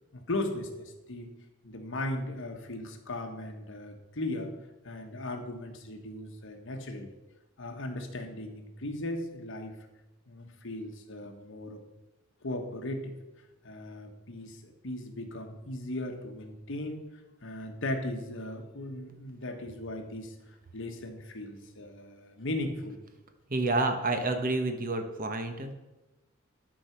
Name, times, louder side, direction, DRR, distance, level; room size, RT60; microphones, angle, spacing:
voice 1, 0.1-1.3 1.6-4.5 4.8-7.1 7.6-9.8 10.3-11.8 12.4-13.1 13.6-17.1 17.4-20.4 20.7-23.0, left 1 dB, 65° left, 4 dB, 1.4 m, -37 dB
voice 2, 23.5-25.7, right 2 dB, 45° right, 6 dB, 1.1 m, -29 dB
11.5 x 5.0 x 5.9 m, 1.0 s
head